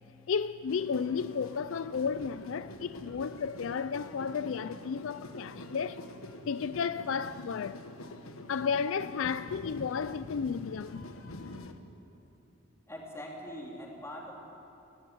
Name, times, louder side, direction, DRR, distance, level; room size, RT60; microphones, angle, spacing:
voice 1, 0.3-6.0 6.5-7.8 8.5-11.1, left 6 dB, 65° left, 0.4 m, -33 dB
sound 1, 0.7-11.7, left 1 dB, 80° left, 1.3 m, -45 dB
voice 2, 12.9-14.3, equal, 15° left, 3.4 m, -42 dB
19.0 x 15.5 x 9.4 m
head